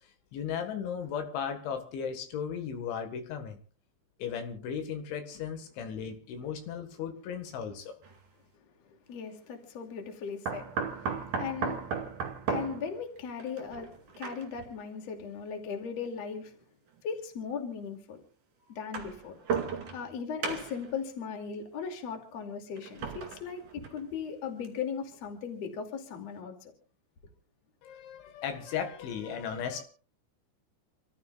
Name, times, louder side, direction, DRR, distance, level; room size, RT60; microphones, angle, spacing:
voice 1, 0.3-3.6 4.2-7.9 27.8-29.8, left 7 dB, 75° left, 6 dB, 4.0 m, -36 dB
sound 1, 8.0-8.2 10.5-14.7 15.7-15.8 17.0-17.1 18.7-20.1 20.4-20.9 22.8-24.1 24.6-24.7 25.1-25.2, right 5 dB, 50° right, 3.3 m, -35 dB
voice 2, 9.1-11.8 12.5-16.6 17.0-18.2 18.7-19.4 19.9-26.7, left 6 dB, 40° left, 3 dB, 3.1 m, -38 dB
29.5 x 14.0 x 2.4 m, 0.38 s
omnidirectional pair, 5.5 m